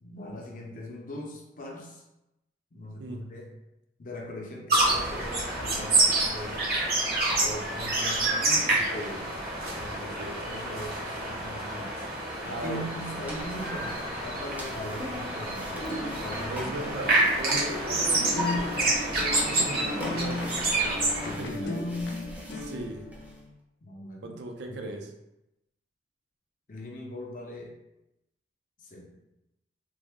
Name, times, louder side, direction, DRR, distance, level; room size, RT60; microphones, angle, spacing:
voice 1, 0.0-2.0 2.7-3.5 4.0-6.6 7.4-9.3 9.7-12.1 12.4-15.9 16.2-17.0 21.2-22.0 23.8-24.4 24.7-25.0 26.7-27.7 28.8-29.1, equal, 50° left, 0 dB, 0.6 m, -40 dB
voice 2, 3.0-3.3 9.9-10.3 12.5-12.9 16.5-21.7 22.5-23.0 24.2-25.1, right 2 dB, 75° right, 3 dB, 0.5 m, -39 dB
sound 1, 4.7-21.3, right 2 dB, 55° right, 0.8 m, -28 dB
sound 2, 13.3-23.4, equal, 10° right, 0.5 m, -42 dB
sound 3, 15.7-23.4, left 2 dB, 90° left, 0.5 m, -36 dB
3.4 x 2.0 x 3.5 m, 0.90 s
head